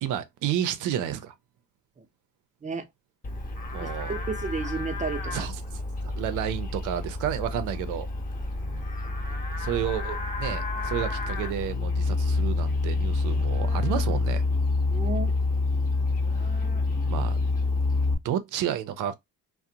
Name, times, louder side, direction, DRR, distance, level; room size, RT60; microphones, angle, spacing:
voice 1, 0.0-1.3 3.7-4.2 5.3-5.6 6.0-8.1 9.6-14.4 16.4-16.6 17.1-17.4 18.2-19.1, right 10 dB, 85° right, 0.5 m, -31 dB
Livestock farm animals working animals, 3.2-18.1, left 3 dB, 30° left, 0.7 m, -28 dB
voice 2, 3.8-5.2 8.6-8.8 14.9-15.3, right 4 dB, 25° right, 0.6 m, -32 dB
2.5 x 2.1 x 2.7 m
cardioid pair, 90°, 30 cm